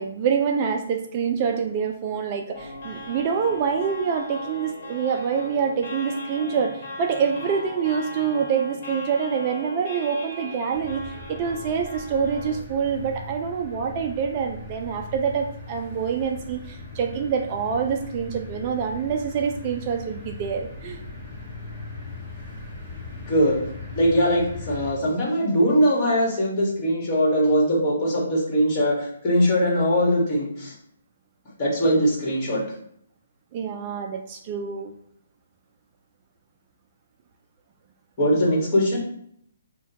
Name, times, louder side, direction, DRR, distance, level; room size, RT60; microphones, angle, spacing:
voice 1, 0.0-21.0 33.5-34.9, right 6 dB, 30° right, 4 dB, 0.3 m, -26 dB
sound 1, 2.5-12.6, left 1 dB, 55° left, 1.2 m, -38 dB
sound 2, 10.7-24.9, left 2 dB, ahead, 1.3 m, -39 dB
voice 2, 23.3-23.6 23.9-30.7 31.6-32.6 38.2-39.0, equal, 30° left, -3 dB, 1.4 m, -21 dB
5.4 x 2.2 x 2.8 m, 0.69 s
hypercardioid pair, 155°, 0 cm